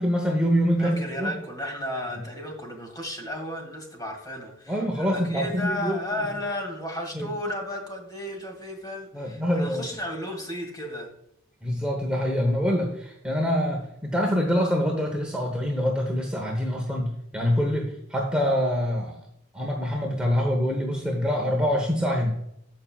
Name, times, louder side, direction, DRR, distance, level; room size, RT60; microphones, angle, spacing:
voice 1, 0.0-1.3 2.1-2.2 4.7-6.0 7.1-7.3 9.1-9.9 11.6-19.2 19.5-22.4, equal, 5° right, 0 dB, 0.9 m, -25 dB
voice 2, 0.8-11.1, left 1 dB, 20° left, 2 dB, 2.0 m, -34 dB
14.5 x 5.7 x 2.3 m, 0.77 s
head